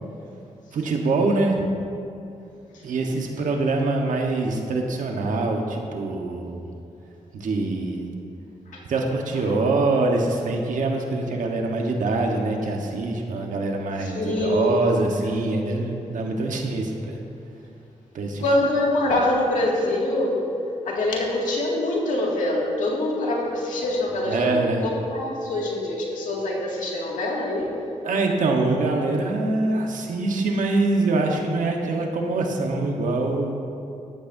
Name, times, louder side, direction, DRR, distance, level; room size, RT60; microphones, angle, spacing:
voice 1, 0.7-1.6 2.8-6.7 7.3-8.1 8.9-17.2 18.1-18.4 24.3-24.8 28.0-33.5, right 2 dB, 90° right, 1 dB, 1.2 m, -24 dB
voice 2, 14.0-14.9 18.4-20.4 20.8-27.7, left 1 dB, 90° left, -3 dB, 2.1 m, -24 dB
14.0 x 12.5 x 2.7 m, 2.7 s
cardioid pair, 75°, 13 cm